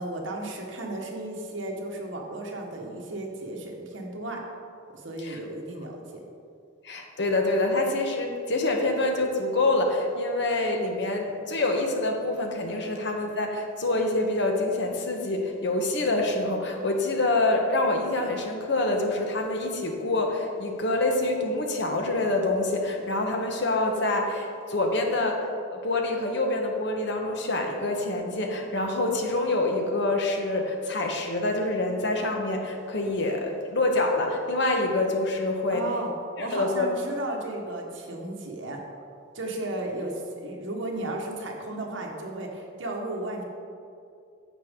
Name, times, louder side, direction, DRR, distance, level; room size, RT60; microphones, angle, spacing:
voice 1, 0.0-4.4 5.0-6.2 35.7-36.1 36.4-38.8 39.3-43.4, right 2 dB, 70° right, 0 dB, 1.3 m, -34 dB
voice 2, 6.8-35.8 36.4-36.9, left 2 dB, 60° left, 3 dB, 1.1 m, -26 dB
10.5 x 7.3 x 3.7 m, 2.4 s
head